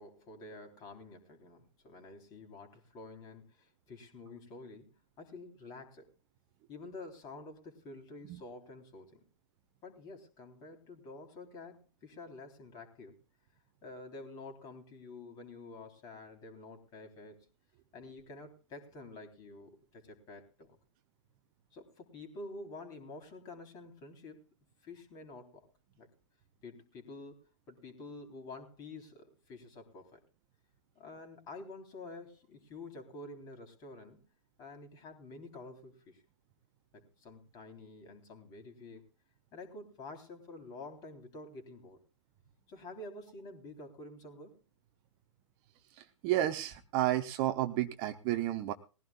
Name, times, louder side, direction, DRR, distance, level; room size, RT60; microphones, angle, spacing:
voice 1, 0.0-6.1 6.7-9.2 9.8-13.1 13.8-17.5 17.9-20.8 21.7-24.5 24.8-25.7 26.0-26.1 26.6-27.4 27.7-30.2 31.0-34.3 34.6-36.2 36.9-39.0 39.5-42.0 42.7-44.6, left 2 dB, 25° left, 5 dB, 3.7 m, -49 dB
voice 2, 45.9-48.7, right 14 dB, 25° right, 7 dB, 1.0 m, -32 dB
21.0 x 15.5 x 2.4 m, 0.33 s
figure-of-eight pair, 120°, 16 cm